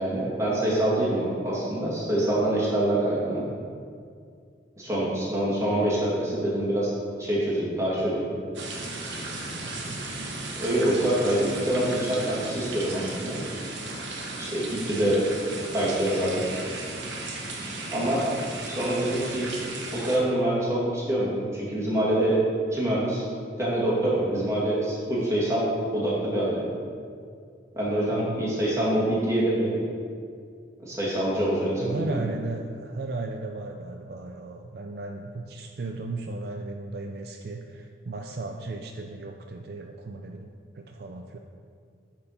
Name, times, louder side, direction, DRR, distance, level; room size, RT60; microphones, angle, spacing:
voice 1, 0.0-3.5 4.8-6.9 7.2-8.3 10.6-13.4 14.4-15.2 15.7-16.4 17.9-18.2 18.7-19.5 19.9-22.4 22.7-23.3 23.6-26.6 27.7-29.9 30.8-32.2, right 1 dB, 15° right, -7 dB, 2.0 m, -25 dB
sound 1, 8.5-20.2, right 2 dB, 85° right, 1.3 m, -35 dB
voice 2, 9.6-10.0 28.1-28.4 31.8-41.4, right 2 dB, 55° right, 3 dB, 0.4 m, -35 dB
8.4 x 4.6 x 5.7 m, 2.3 s
head